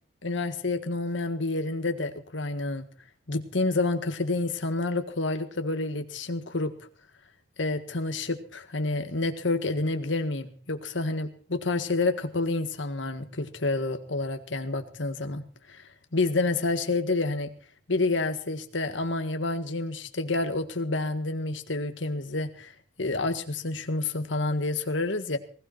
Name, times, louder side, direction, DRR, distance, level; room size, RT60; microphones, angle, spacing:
voice 1, 0.2-2.9 3.3-6.7 7.6-15.8 16.1-17.5 17.9-22.7 23.0-25.4, left 2 dB, 80° left, 7 dB, 1.7 m, -29 dB
19.5 x 15.5 x 4.4 m, 0.43 s
head